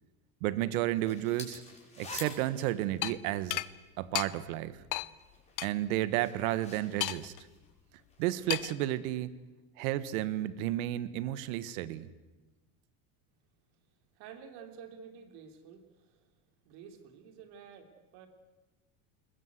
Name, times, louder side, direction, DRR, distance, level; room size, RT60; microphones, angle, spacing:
voice 1, 0.4-1.6 2.0-3.6 4.0-4.8 5.6-7.3 8.2-9.3 9.8-12.1, right 14 dB, 80° right, 15 dB, 1.5 m, -32 dB
sound 1, 0.9-4.0 4.7-8.3, left 3 dB, 15° left, 5.9 m, -49 dB
sound 2, 3.0-3.1 3.5-3.7 4.1-4.3 4.9-5.1 5.6-5.7 7.0-7.4 8.5-8.8, left 18 dB, 50° left, 0.9 m, -33 dB
voice 2, 14.1-16.4 16.6-18.3, right 7 dB, 65° right, 6 dB, 3.3 m, -51 dB
21.5 x 21.0 x 8.2 m, 1.1 s
supercardioid pair, 135°, 42 cm